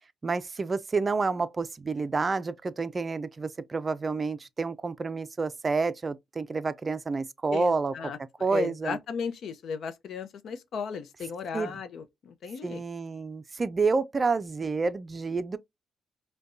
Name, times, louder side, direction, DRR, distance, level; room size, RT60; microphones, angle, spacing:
voice 1, 0.2-8.1 8.4-9.0 11.5-11.8 12.6-15.6, right 4 dB, 30° right, 0.4 m, -29 dB
voice 2, 7.5-8.2 8.5-12.8, left 6 dB, 65° left, 0.6 m, -35 dB
5.1 x 2.2 x 2.5 m
cardioid pair, 90°, 0 cm